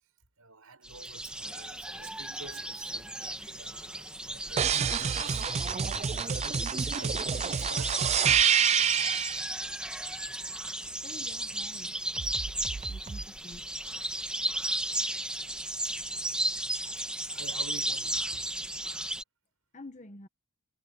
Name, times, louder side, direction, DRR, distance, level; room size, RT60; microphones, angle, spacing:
voice 1, 0.4-5.5 6.1-8.2 17.0-18.5, right 4 dB, 80° right, 6.2 m, -49 dB
sound 1, 0.8-19.2, right 1 dB, 5° right, 1.5 m, -35 dB
sound 2, 4.6-9.4 12.2-13.2, right 8 dB, 30° right, 0.3 m, -28 dB
voice 2, 10.9-12.0 12.9-13.6 19.7-20.3, left 1 dB, 35° left, 1.6 m, -48 dB
head